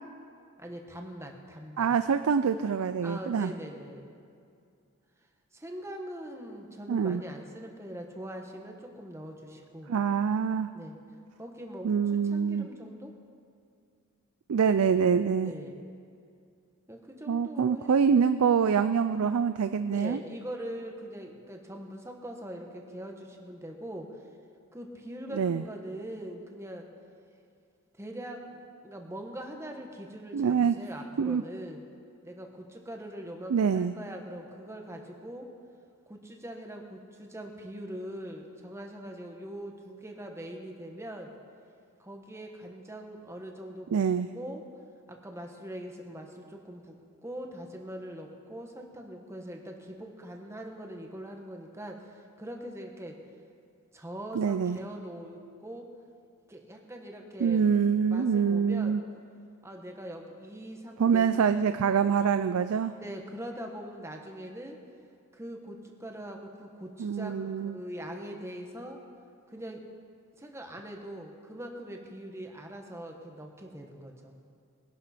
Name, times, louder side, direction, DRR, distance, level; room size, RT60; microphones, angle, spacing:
voice 1, 0.6-1.9 3.0-4.2 5.5-9.9 10.7-11.0 11.4-13.1 15.4-15.9 16.9-17.9 19.9-24.2 24.7-26.9 27.9-31.8 32.2-35.5 36.1-41.4 42.0-43.9 44.3-44.6 45.1-47.0 47.2-53.2 53.9-55.9 56.5-57.6 58.1-59.0 59.6-61.5 63.0-64.8 65.3-69.0 69.5-69.8 70.4-74.4, right 1 dB, 15° right, 2 dB, 1.1 m, -42 dB
voice 2, 1.8-3.5 6.9-7.2 9.9-10.7 11.8-12.7 14.5-15.5 17.3-20.2 25.3-25.6 30.3-30.8 31.2-31.4 33.5-33.9 43.9-44.3 54.3-54.8 57.4-59.0 61.0-62.9 67.0-67.8, right 6 dB, 85° right, 11 dB, 0.4 m, -25 dB
20.5 x 11.5 x 4.3 m, 2.4 s
head